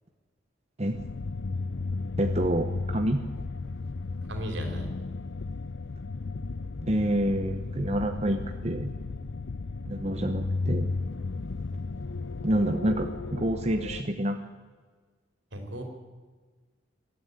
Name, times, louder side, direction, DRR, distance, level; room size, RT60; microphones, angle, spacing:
sound 1, 0.9-14.0, left 3 dB, 80° left, 0.6 m, -34 dB
voice 1, 2.2-3.2 6.8-8.9 9.9-10.9 12.4-14.4, right 1 dB, 35° right, 5 dB, 1.1 m, -28 dB
voice 2, 4.3-4.9 15.5-15.8, right 1 dB, 80° right, 4 dB, 4.1 m, -36 dB
20.5 x 13.0 x 9.8 m, 1.4 s
head